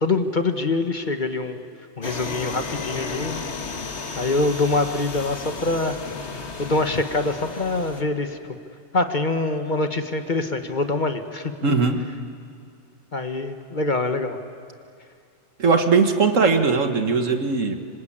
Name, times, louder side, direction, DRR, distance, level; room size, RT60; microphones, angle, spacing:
voice 1, 0.0-1.6 2.0-3.4 4.1-6.0 6.6-8.4 8.9-11.5 13.1-14.4, left 2 dB, 40° left, 7 dB, 1.4 m, -24 dB
sound 1, 2.0-8.0, left 4 dB, 60° left, 1.9 m, -33 dB
voice 2, 11.6-12.0 15.6-17.7, right 4 dB, 75° right, 6 dB, 2.0 m, -19 dB
26.5 x 25.5 x 8.7 m, 2.3 s
omnidirectional pair, 1.3 m